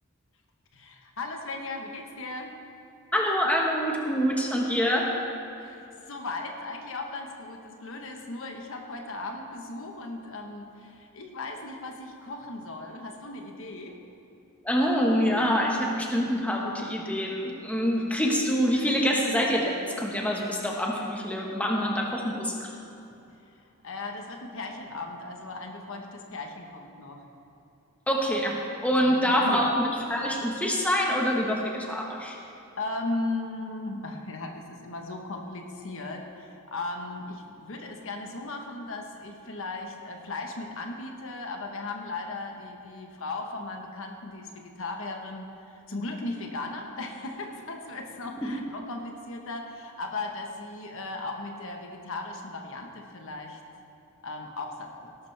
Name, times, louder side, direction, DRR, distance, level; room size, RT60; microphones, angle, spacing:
voice 1, 0.7-2.5 5.6-14.0 23.8-27.2 29.0-29.7 32.8-53.6 54.2-55.2, left 2 dB, 65° left, 3 dB, 1.2 m, -37 dB
voice 2, 3.1-5.1 14.6-22.7 28.1-32.4 48.4-48.5, equal, 5° left, -1 dB, 1.3 m, -26 dB
18.0 x 12.0 x 3.4 m, 2.8 s
head